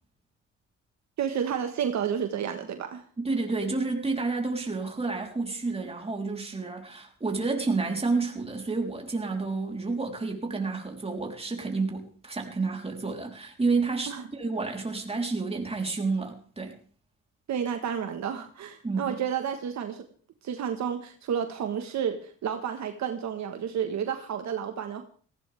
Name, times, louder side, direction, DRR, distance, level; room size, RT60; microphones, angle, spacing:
voice 1, 1.2-3.0 14.1-14.2 17.5-20.1 20.4-25.0, right 8 dB, 65° right, 6 dB, 1.6 m, -31 dB
voice 2, 3.2-16.8 18.8-19.1, right 3 dB, 20° right, 1 dB, 3.8 m, -30 dB
18.0 x 16.0 x 3.5 m, 0.42 s
cardioid pair, 90°, 30 cm